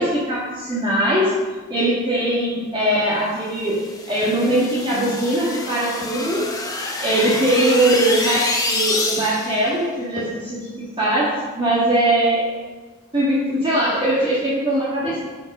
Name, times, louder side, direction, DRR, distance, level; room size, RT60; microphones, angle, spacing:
voice 1, 0.0-1.3 1.7-6.5 7.0-12.4 13.1-15.2, right 1 dB, 25° right, -7 dB, 1.7 m, -21 dB
sound 1, 3.7-9.6, left 2 dB, 15° left, 1.0 m, -26 dB
11.5 x 5.2 x 5.5 m, 1.3 s
head